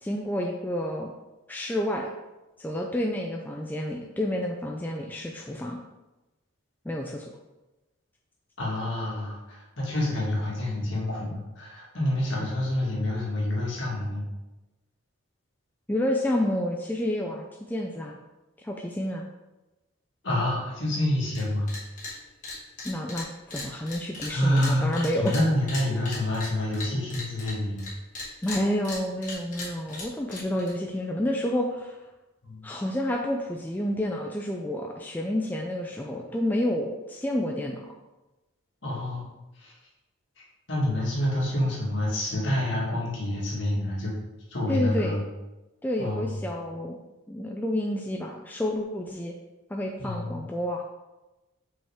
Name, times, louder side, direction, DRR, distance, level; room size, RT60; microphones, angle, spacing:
voice 1, 0.0-1.1 1.5-2.1 2.6-5.8 6.9-7.3 15.9-18.2 18.6-19.3 22.8-25.3 28.4-32.0 32.6-37.9 44.7-45.2 45.8-47.0 47.3-49.3 49.7-50.8, left 1 dB, 10° left, 0 dB, 0.3 m, -29 dB
voice 2, 8.6-14.2 20.2-21.7 24.3-27.8 32.4-32.6 38.8-39.3 39.6-39.7 40.4-44.1 44.5-45.2 46.0-46.4 50.0-50.4, left 1 dB, 60° left, -4 dB, 1.9 m, -28 dB
sound 1, 21.3-21.4 21.7-22.1 22.4-27.9 28.1-30.7, left 3 dB, 35° left, 1.7 m, -37 dB
5.5 x 5.5 x 3.5 m, 1.1 s
head